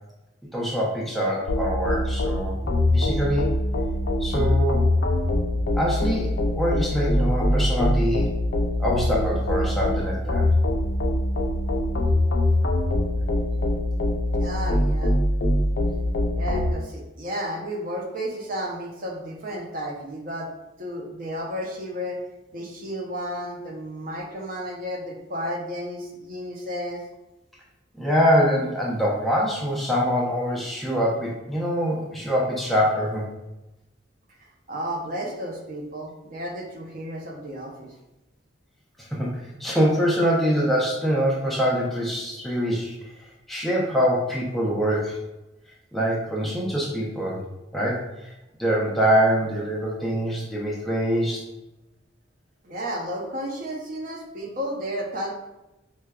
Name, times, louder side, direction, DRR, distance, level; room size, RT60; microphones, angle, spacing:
voice 1, 0.5-3.5 4.2-4.9 5.8-8.3 8.8-10.5 28.0-33.3 39.0-43.0 43.5-45.2 45.9-47.4 47.7-48.3 48.6-51.4, equal, ahead, -5 dB, 0.5 m, -24 dB
sound 1, 1.5-16.7, left 1 dB, 65° left, 0.4 m, -23 dB
voice 2, 14.4-15.1 16.3-20.5 20.8-22.2 22.5-27.0 34.4-37.9 52.6-55.3, equal, 45° right, 0 dB, 0.5 m, -32 dB
4.6 x 2.2 x 2.2 m, 0.97 s
head